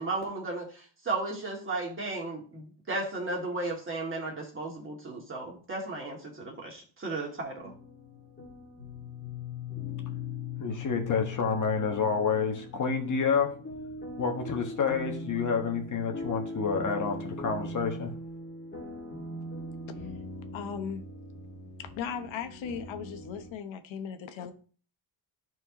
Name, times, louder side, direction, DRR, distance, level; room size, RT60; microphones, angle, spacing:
voice 1, 0.0-7.7, right 2 dB, 25° right, 2.4 m, -35 dB
sound 1, 7.6-23.5, left 3 dB, 25° left, 2.2 m, -40 dB
voice 2, 10.6-13.5 14.2-18.1, left 5 dB, 40° left, 1.5 m, -29 dB
voice 3, 20.5-21.0 21.8-24.5, left 7 dB, 75° left, 1.1 m, -37 dB
13.5 x 4.6 x 3.0 m
cardioid pair, 155°, 47 cm